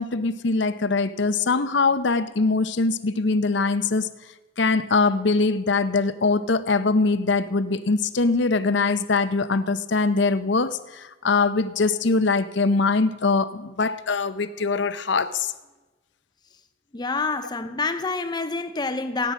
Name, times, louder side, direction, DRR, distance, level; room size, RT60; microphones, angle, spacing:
voice 1, 0.0-4.1 4.6-10.8 11.2-15.5, left 3 dB, 65° left, 0.7 m, -22 dB
voice 2, 16.9-19.3, left 3 dB, 20° left, 0.6 m, -27 dB
16.5 x 9.7 x 6.3 m
head